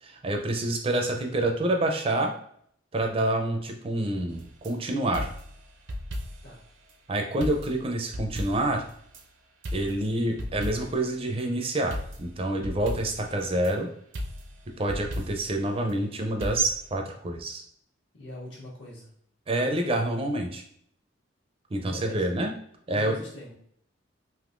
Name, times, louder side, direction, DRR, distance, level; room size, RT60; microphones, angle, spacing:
voice 1, 0.0-2.3 2.9-5.3 7.1-8.8 9.7-13.9 14.8-17.6 19.5-20.6 21.7-22.5 22.9-23.1, right 1 dB, 30° right, 3 dB, 0.4 m, -27 dB
sound 1, 4.3-4.7 5.1-6.6 6.9-7.0 7.4-9.2 9.6-11.1 11.9-13.7 14.1-15.6 16.4-16.9, equal, 80° right, 0.5 m, -36 dB
voice 2, 18.1-19.1 21.9-22.3 22.9-23.5, left 1 dB, 75° left, -4 dB, 1.3 m, -41 dB
3.5 x 2.6 x 2.5 m, 0.66 s
head